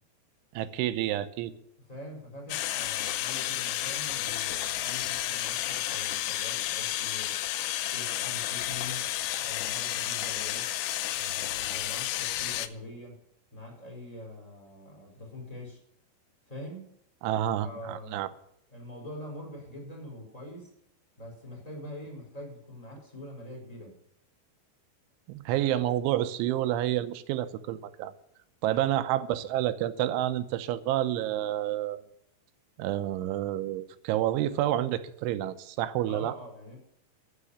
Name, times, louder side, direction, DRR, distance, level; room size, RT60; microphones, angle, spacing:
voice 1, 0.5-1.5 17.2-18.3 25.3-28.1 28.6-32.0 32.8-36.3, right 13 dB, 85° right, 12 dB, 3.3 m, -29 dB
voice 2, 1.9-7.4 7.9-9.1 9.4-10.7 11.1-13.2 13.5-15.8 16.5-16.9 17.6-18.3 18.7-20.7 21.2-24.0 28.7-29.0 36.0-36.8, left 1 dB, 10° left, -1 dB, 4.2 m, -44 dB
Kitchen-Sink-Fill-Up-Half-Way, 2.5-12.7, left 14 dB, 80° left, 2.4 m, -31 dB
13.5 x 6.8 x 9.7 m, 0.72 s
omnidirectional pair, 5.3 m